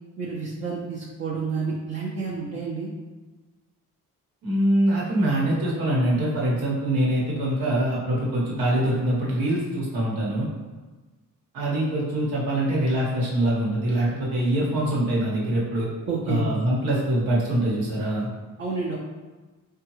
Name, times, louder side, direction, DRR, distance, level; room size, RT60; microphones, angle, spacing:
voice 1, 0.2-2.9 16.1-16.4 18.6-19.0, right 4 dB, 35° right, -4 dB, 0.6 m, -29 dB
voice 2, 4.4-10.5 11.5-15.9 16.3-18.3, right 1 dB, 85° right, -5 dB, 1.2 m, -24 dB
3.7 x 2.3 x 3.0 m, 1.3 s
cardioid pair, 85°, 34 cm